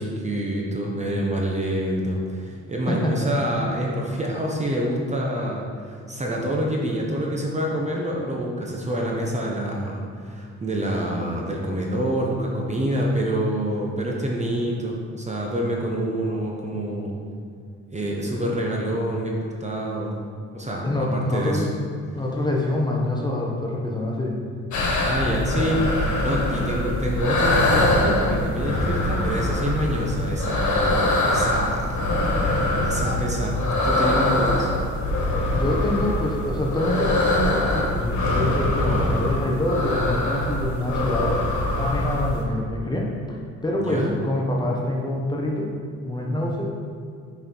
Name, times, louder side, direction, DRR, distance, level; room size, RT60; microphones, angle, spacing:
voice 1, 0.0-17.2 17.9-20.2 20.5-21.7 25.0-32.1 32.4-33.6 33.8-34.7 38.8-39.2 43.8-44.2, right 1 dB, 25° right, -2 dB, 1.2 m, -27 dB
voice 2, 20.8-21.8 22.1-24.4 26.7-26.9 35.5-41.4 41.8-43.4 43.6-45.7 46.0-46.8, left 1 dB, 15° left, -2 dB, 1.3 m, -26 dB
sound 1, 24.7-42.4, left 1 dB, 75° left, 1.7 m, -23 dB
6.4 x 5.8 x 4.7 m, 2.3 s
cardioid pair, 90°, 30 cm